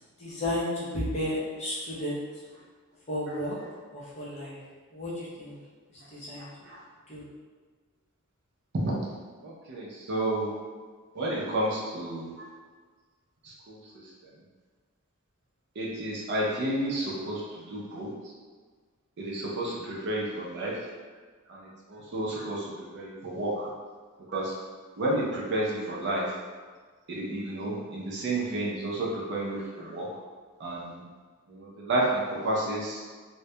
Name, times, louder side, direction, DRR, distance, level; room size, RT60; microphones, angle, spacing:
voice 1, 0.2-2.1 3.1-3.6 3.9-4.6 4.9-5.6 5.9-6.5 7.1-7.2, left 1 dB, 30° left, -8 dB, 0.6 m, -33 dB
voice 2, 6.4-6.8 9.4-10.5 11.1-12.5 13.4-13.8 15.8-18.1 19.2-20.8 21.5-23.7 24.3-24.6 25.0-26.3 27.1-30.1 30.6-31.0 31.5-33.0, right 1 dB, 55° right, -4 dB, 0.5 m, -31 dB
2.2 x 2.1 x 2.7 m, 1.5 s
head